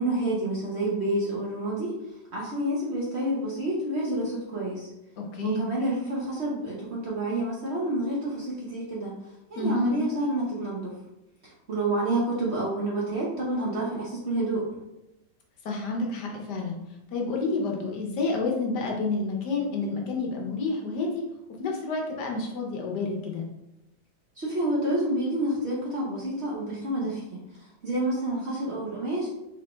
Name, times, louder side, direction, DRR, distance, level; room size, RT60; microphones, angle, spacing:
voice 1, 0.0-2.0 2.3-4.9 5.4-9.2 9.5-11.0 11.4-14.7 24.4-29.3, right 1 dB, 45° right, -5 dB, 1.0 m, -29 dB
voice 2, 5.2-5.7 9.5-10.0 15.6-16.8 17.1-21.2 21.6-23.4, left 3 dB, 70° left, 1 dB, 1.3 m, -29 dB
4.0 x 3.7 x 3.3 m, 0.90 s
omnidirectional pair, 2.0 m